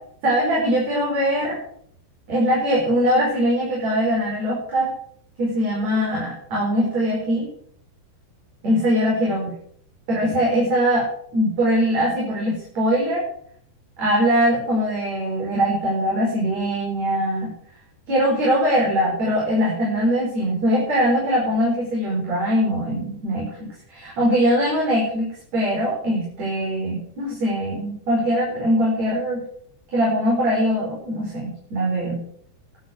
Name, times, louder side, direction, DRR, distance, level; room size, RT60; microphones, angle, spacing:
voice 1, 0.2-1.6 2.3-4.9 5.4-7.5 8.6-9.5 10.1-11.1 11.3-13.2 14.0-17.5 18.1-29.4 29.9-32.2, equal, 40° right, -5 dB, 5.8 m, -21 dB
12.0 x 8.5 x 7.9 m, 0.62 s
omnidirectional pair, 4.7 m